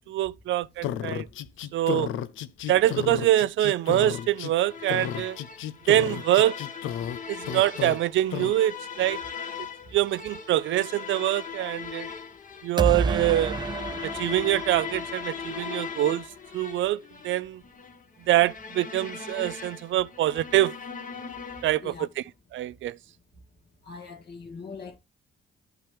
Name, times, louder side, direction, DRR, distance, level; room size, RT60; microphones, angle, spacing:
voice 1, 0.1-1.3 1.7-2.1 2.7-5.4 5.9-6.6 7.3-9.2 9.9-12.1 12.6-13.6 14.0-16.2 16.5-17.0 17.2-17.6 18.3-20.7 21.6-22.2 22.5-23.0, right 14 dB, 75° right, 0.5 m, -24 dB
sound 1, 0.8-4.5 4.9-7.2 7.4-8.0 8.3-8.5, left 10 dB, 85° left, 0.7 m, -32 dB
sound 2, 3.9-21.9, left 6 dB, 40° left, 1.6 m, -39 dB
sound 3, 12.8-15.7, right 4 dB, 20° right, 0.5 m, -30 dB
voice 2, 23.9-25.0, left 4 dB, 55° left, 2.2 m, -41 dB
12.5 x 5.7 x 3.5 m
cardioid pair, 90°, 20 cm